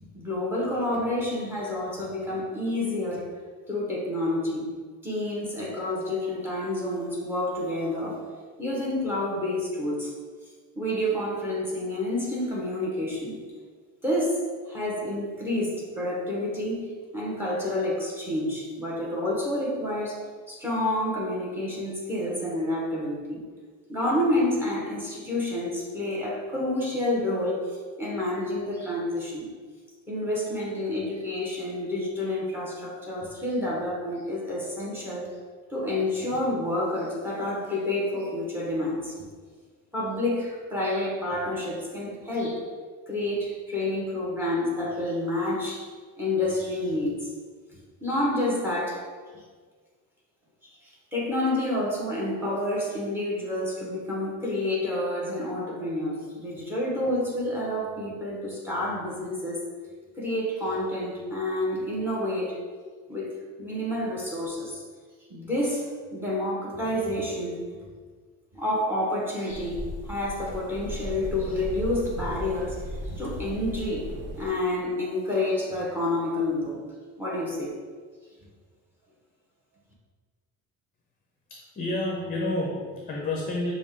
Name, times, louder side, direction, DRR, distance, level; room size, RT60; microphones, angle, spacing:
voice 1, 0.1-3.3 3.7-4.7 5.0-8.3 8.6-10.1 10.7-13.4 14.0-14.4 14.7-23.4 23.9-29.5 30.1-35.3 35.7-39.1 39.9-42.6 43.1-45.9 46.2-47.3 48.0-49.1 50.6-50.7 51.1-59.6 60.2-62.5 63.1-63.3 63.6-64.8 65.3-67.6 68.5-74.1 74.4-76.8 77.2-77.8, left 1 dB, 5° right, -4 dB, 1.0 m, -29 dB
sound 1, 69.5-74.5, equal, 35° right, 0.5 m, -36 dB
voice 2, 81.5-83.7, left 2 dB, 25° left, -2 dB, 0.6 m, -29 dB
6.0 x 2.4 x 3.6 m, 1.5 s
cardioid pair, 150°, 33 cm